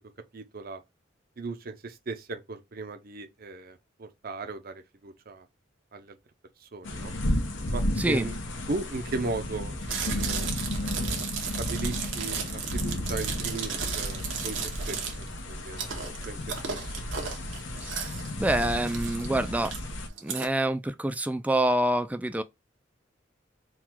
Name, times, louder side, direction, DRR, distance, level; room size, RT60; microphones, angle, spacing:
voice 1, 0.3-0.8 1.4-5.5 5.9-6.2 6.7-7.1 7.7-8.3 8.7-10.5 10.8-11.3 11.6-15.9 16.2-16.9, right 3 dB, 50° right, 0.6 m, -37 dB
sound 1, 6.8-20.1, left 1 dB, 85° left, 1.0 m, -33 dB
voice 2, 8.0-8.3 17.8-18.1 18.4-19.7 20.2-22.4, right 1 dB, 10° right, 0.3 m, -27 dB
Chewing mastication, 9.8-20.5, right 6 dB, 85° right, 1.0 m, -35 dB
3.8 x 2.3 x 4.5 m
head